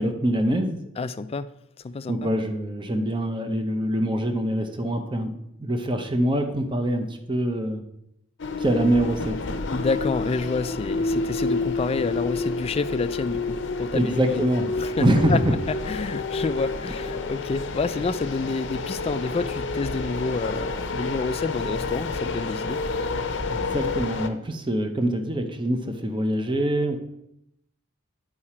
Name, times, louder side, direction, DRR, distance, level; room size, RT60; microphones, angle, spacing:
voice 1, 0.0-0.8 2.1-5.3 5.6-7.8 8.6-9.4 13.9-14.7 15.0-15.5 23.5-27.0, right 1 dB, 25° right, 6 dB, 0.7 m, -24 dB
voice 2, 1.0-1.5 1.8-2.3 9.7-14.4 14.8-15.4 15.9-22.8, left 3 dB, 30° left, 12 dB, 0.3 m, -28 dB
sound 1, 8.4-24.3, left 3 dB, 60° left, 0.7 m, -29 dB
10.0 x 4.9 x 4.3 m, 0.79 s
head